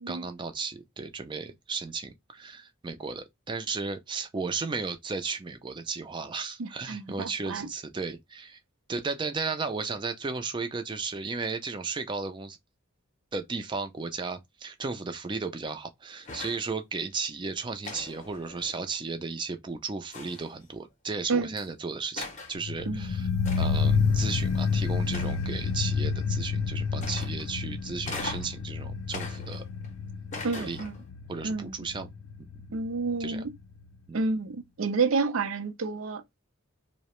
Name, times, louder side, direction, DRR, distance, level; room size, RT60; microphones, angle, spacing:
voice 1, 0.1-8.6 8.9-12.6 13.3-23.3 23.6-29.7 30.6-30.8 31.3-32.1 32.4-32.5 33.2-33.4 34.1-34.2, right 4 dB, 25° right, 0.4 m, -34 dB
voice 2, 6.6-7.7 21.3-21.6 22.9-23.1 30.4-31.0 31.4-31.9 32.7-33.5 34.1-36.4, right 4 dB, 80° right, 0.5 m, -30 dB
sound 1, 16.2-16.7 17.8-19.0 20.1-20.6 21.6-21.7 22.2-22.6 23.4-23.9 25.1-25.7 27.0-27.5 28.0-28.6 29.1-29.9 30.3-31.1, left 3 dB, 35° left, 0.6 m, -40 dB
sound 2, 22.6-33.6 33.8-33.9, left 5 dB, 90° left, 0.4 m, -29 dB
2.8 x 2.1 x 2.9 m
head